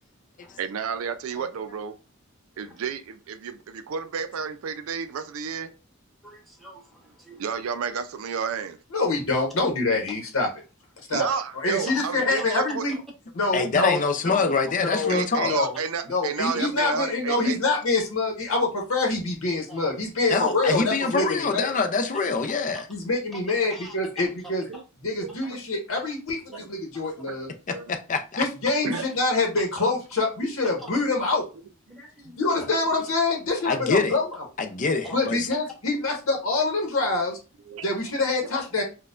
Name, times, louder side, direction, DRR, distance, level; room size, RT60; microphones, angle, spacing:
voice 1, 0.6-2.0 2.6-5.7 7.4-8.8 11.1-12.9 15.1-17.6 24.7-25.6 26.5-26.7 27.3-27.4 27.7-27.9 28.8-29.0 31.1-31.3 32.5-32.7 37.7-37.8, right 6 dB, 85° right, 0.4 m, -31 dB
voice 2, 6.2-7.5 11.9-12.1 12.9-13.0 19.7-19.8 22.7-22.8 23.3-24.5 25.4-25.5 26.9-27.1 28.9-29.1 29.6-29.9 30.8-30.9 31.9-32.4 35.0-35.2 36.1-36.2, equal, ahead, 0.9 m, -44 dB
voice 3, 8.9-10.5 11.1-11.3 11.6-12.9 13.3-14.5 14.8-15.2 15.5-15.7 16.1-21.7 22.9-24.6 25.0-26.4 26.7-27.5 28.4-31.4 32.4-34.3 35.1-37.4 37.8-38.8, left 3 dB, 85° left, 0.9 m, -25 dB
voice 4, 13.5-15.5 20.3-22.9 27.7-28.5 33.6-34.2 34.6-35.5, left 4 dB, 40° left, 0.4 m, -25 dB
4.1 x 2.2 x 2.4 m
head